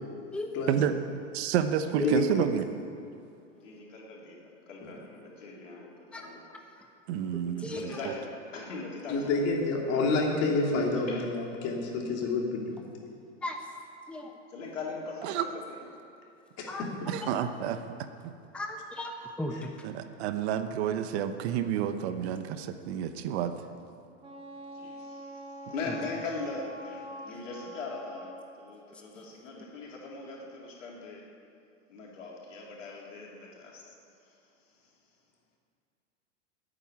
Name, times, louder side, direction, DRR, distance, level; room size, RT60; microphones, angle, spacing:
voice 1, 0.3-0.8 2.0-2.3 3.7-3.9 6.1-6.8 7.6-8.0 13.4-13.6 14.1-14.4 16.7-16.9 17.2-17.3 18.5-19.7 25.9-26.0 27.3-27.4 29.1-29.2 29.6-29.7, left 2 dB, 5° left, 3 dB, 0.9 m, -36 dB
voice 2, 1.3-2.6 7.1-8.1 15.2-15.5 17.1-17.8 18.2-18.3 19.8-23.5, right 9 dB, 60° right, 9 dB, 1.1 m, -30 dB
voice 3, 2.0-2.4 4.8-5.0 9.1-12.9 16.6-17.1 19.5-19.6, left 3 dB, 40° left, -1 dB, 3.1 m, -29 dB
voice 4, 3.6-6.4 7.7-9.3 11.1-11.2 14.5-15.8 24.7-28.3 28.6-31.2 31.9-33.8, left 3 dB, 85° left, -3 dB, 3.8 m, -40 dB
Wind instrument woodwind instrument, 24.2-28.5, right 1 dB, 15° right, 2.0 m, -45 dB
11.0 x 9.2 x 9.5 m, 2.5 s
hypercardioid pair, 120°, 37 cm